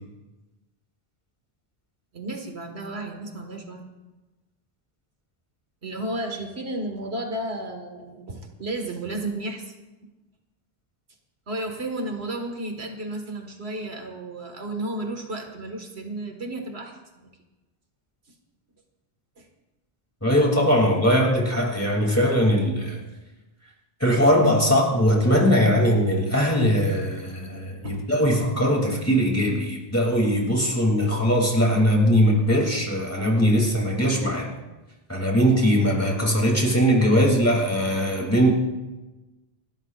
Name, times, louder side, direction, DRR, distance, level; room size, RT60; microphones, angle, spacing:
voice 1, 2.1-3.9 5.8-9.7 11.5-17.3 19.4-19.5 24.6-24.7 27.8-28.0, right 1 dB, 90° right, 3 dB, 2.1 m, -33 dB
voice 2, 20.2-23.0 24.0-34.5 35.1-38.5, equal, 15° left, -1 dB, 2.9 m, -20 dB
29.5 x 12.5 x 2.5 m, 1.1 s
omnidirectional pair, 1.0 m